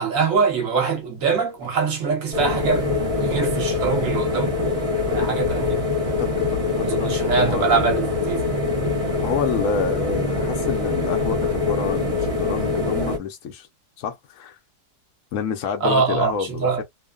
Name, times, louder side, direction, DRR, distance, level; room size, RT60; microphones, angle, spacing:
voice 1, 0.0-2.9 3.2-4.7 5.1-5.9 6.8-8.6 15.8-16.8, right 5 dB, 55° right, 1.4 m, -23 dB
sound 1, 2.3-13.2, left 3 dB, 30° right, 0.8 m, -24 dB
voice 2, 5.1-5.4 6.2-8.0 9.2-13.7 14.0-14.6 15.3-16.8, left 6 dB, 65° left, 0.9 m, -28 dB
3.0 x 2.1 x 2.3 m
omnidirectional pair, 1.7 m